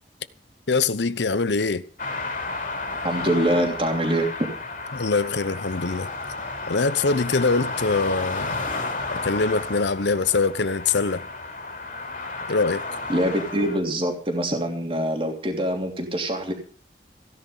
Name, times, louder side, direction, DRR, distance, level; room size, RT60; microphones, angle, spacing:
voice 1, 0.7-1.8 4.9-6.1 6.7-8.6 9.2-11.3 12.5-12.8, left 4 dB, 85° left, 0.9 m, -23 dB
sound 1, 2.0-13.8, left 3 dB, 45° left, 3.0 m, -32 dB
voice 2, 3.0-4.3 13.1-16.5, right 1 dB, 30° right, 3.1 m, -24 dB
16.5 x 10.5 x 5.5 m
head